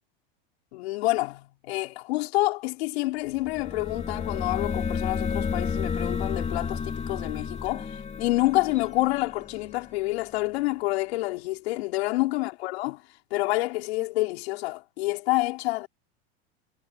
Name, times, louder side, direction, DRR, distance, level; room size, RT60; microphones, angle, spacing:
voice 1, 0.7-13.0 13.3-15.9, left 19 dB, 75° left, 4.6 m, -28 dB
sound 1, 3.3-10.1, left 6 dB, 20° left, 2.6 m, -31 dB
supercardioid pair, 120°, 31 cm